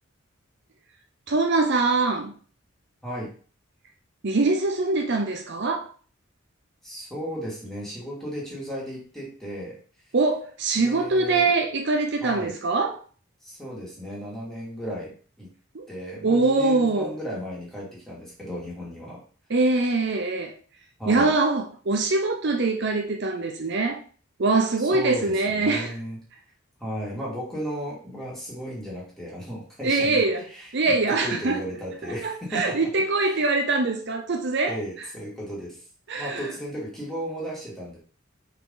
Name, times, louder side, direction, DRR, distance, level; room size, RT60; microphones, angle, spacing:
voice 1, 1.3-2.3 4.2-5.9 10.1-13.0 15.7-15.9 16.2-17.2 19.5-20.5 21.1-24.0 24.4-26.0 29.8-30.4 30.7-31.6 32.2-34.8 36.1-36.5, right 3 dB, 55° right, 0.6 m, -23 dB
voice 2, 6.8-9.8 10.7-11.5 12.2-12.6 13.4-15.1 15.4-15.5 15.9-19.2 21.0-21.3 24.9-26.2 26.8-30.2 30.5-32.8 33.2-33.5 34.6-35.8 36.2-38.0, equal, ahead, 2.4 m, -35 dB
5.4 x 4.8 x 3.9 m
head